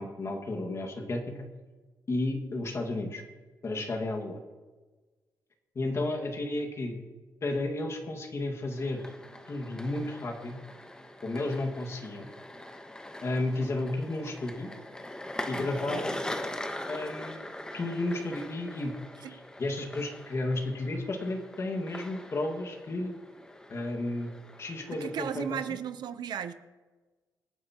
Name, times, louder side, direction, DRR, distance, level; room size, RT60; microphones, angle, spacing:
voice 1, 0.0-1.5 2.1-3.2 3.6-4.4 5.8-7.0 7.4-9.0 9.5-10.6 11.2-12.3 13.2-14.7 15.5-16.2 16.9-17.5 17.7-18.9 19.2-23.1 23.7-24.3 24.6-25.6, left 2 dB, 40° left, 2 dB, 1.9 m, -33 dB
sound 1, 8.7-25.7, left 1 dB, 10° left, 1.0 m, -42 dB
voice 2, 15.5-16.0 19.2-19.4 24.9-26.5, right 9 dB, 75° right, 11 dB, 0.7 m, -36 dB
25.5 x 9.4 x 2.9 m, 1.3 s
cardioid pair, 125°, 7 cm